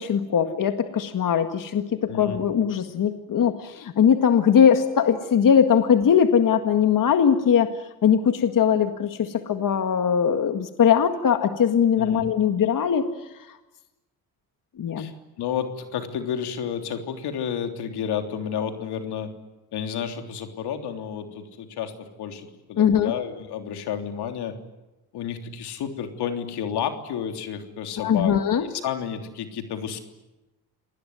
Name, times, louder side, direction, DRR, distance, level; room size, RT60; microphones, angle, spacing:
voice 1, 0.0-7.7 8.0-13.1 14.8-15.1 22.8-23.1 28.0-28.7, left 8 dB, 55° left, 7 dB, 1.9 m, -20 dB
voice 2, 2.1-2.4 12.0-12.2 15.0-15.1 15.4-19.3 19.7-24.6 25.1-30.0, left 8 dB, 90° left, 6 dB, 3.4 m, -31 dB
27.5 x 20.0 x 9.5 m, 1.0 s
cardioid pair, 95°, 38 cm